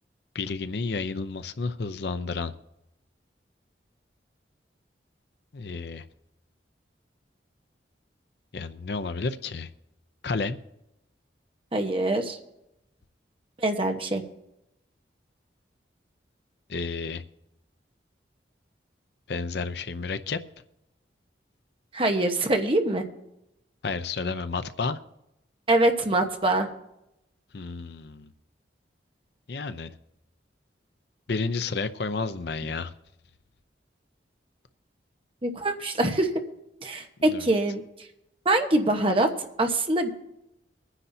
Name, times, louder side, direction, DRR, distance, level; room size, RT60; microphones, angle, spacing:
voice 1, 0.3-2.5 5.5-6.0 8.5-9.7 10.2-10.6 16.7-17.2 19.3-20.4 23.8-25.0 27.5-28.3 29.5-29.9 31.3-32.9 37.3-37.5, left 4 dB, 65° left, 12 dB, 0.6 m, -31 dB
voice 2, 11.7-12.4 13.6-14.2 21.9-23.0 25.7-26.7 35.4-36.3 36.8-37.8 38.4-39.3 39.6-40.1, right 2 dB, 30° right, 4 dB, 1.1 m, -24 dB
23.0 x 9.9 x 2.7 m, 0.86 s
head